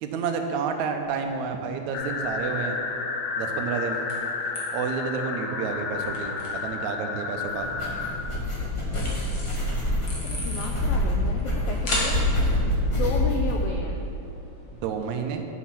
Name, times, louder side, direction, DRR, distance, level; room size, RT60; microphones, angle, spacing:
voice 1, 0.0-2.8 3.4-4.0 4.7-7.7 14.8-15.4, right 5 dB, 80° right, 5 dB, 2.0 m, -30 dB
sound 1, 1.0-15.1, left 1 dB, 45° left, 2.2 m, -39 dB
sound 2, 1.9-8.1, left 4 dB, 70° left, 1.9 m, -31 dB
sound 3, 7.5-13.6, left 1 dB, 20° left, 0.8 m, -26 dB
voice 2, 10.2-12.2 12.9-14.0, left 4 dB, 85° left, 1 dB, 1.3 m, -32 dB
8.0 x 7.3 x 5.8 m, 2.6 s
omnidirectional pair, 3.4 m